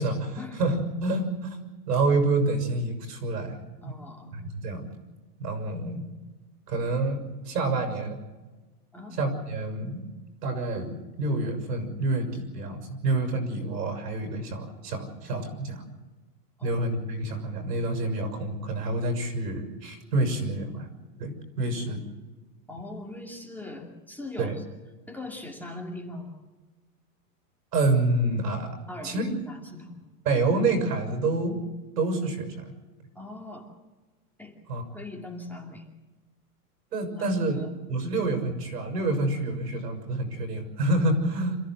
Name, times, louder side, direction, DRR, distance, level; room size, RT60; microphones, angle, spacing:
voice 1, 0.0-1.6 1.9-3.6 3.8-3.9 4.3-4.9 5.4-6.1 6.7-8.2 9.1-10.0 10.4-15.8 16.6-20.9 21.2-22.0 24.4-24.5 27.7-28.7 29.0-29.4 30.2-31.6 32.0-32.7 34.7-34.8 36.9-37.6 37.9-41.6, right 2 dB, 80° right, 6 dB, 6.3 m, -28 dB
voice 2, 3.8-4.4 8.9-9.2 16.6-16.8 21.9-22.0 22.7-24.6 25.1-26.4 28.9-30.0 33.1-33.7 34.4-34.6 34.9-35.9 37.2-37.7, left 2 dB, 5° left, 0 dB, 2.5 m, -40 dB
27.0 x 14.5 x 7.8 m, 1.2 s
supercardioid pair, 140°, 47 cm